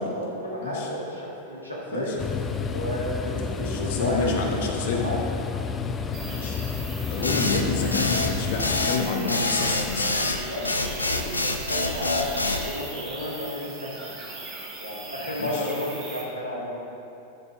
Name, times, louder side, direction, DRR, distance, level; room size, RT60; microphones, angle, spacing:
voice 1, 0.0-2.2 2.6-5.2 10.1-14.1 14.8-16.9, equal, 85° right, -4 dB, 1.6 m, -32 dB
sound 1, 2.2-8.9, left 6 dB, 20° left, 0.4 m, -30 dB
voice 2, 3.6-5.0 6.2-6.6 7.1-10.2 15.4-15.7, left 4 dB, 55° left, 1 dB, 1.1 m, -29 dB
sound 2, 6.1-16.2, right 2 dB, 30° right, 1.5 m, -40 dB
sound 3, 7.2-12.7, left 2 dB, 80° left, 0.5 m, -26 dB
10.5 x 5.4 x 3.6 m, 2.7 s
figure-of-eight pair, 90°, 0 cm